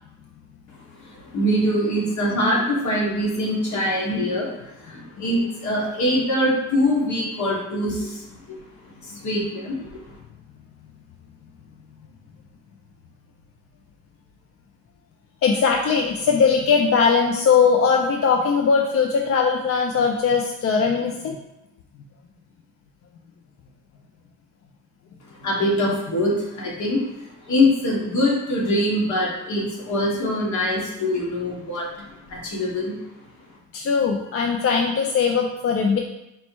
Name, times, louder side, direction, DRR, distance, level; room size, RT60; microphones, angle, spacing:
voice 1, 1.0-8.6 9.0-10.2 25.4-31.9 32.3-33.0, left 1 dB, 70° left, -3 dB, 1.3 m, -23 dB
voice 2, 15.4-21.4 33.7-36.0, left 5 dB, 50° left, 2 dB, 0.5 m, -20 dB
4.4 x 2.1 x 4.4 m, 0.92 s
cardioid pair, 90°, 30 cm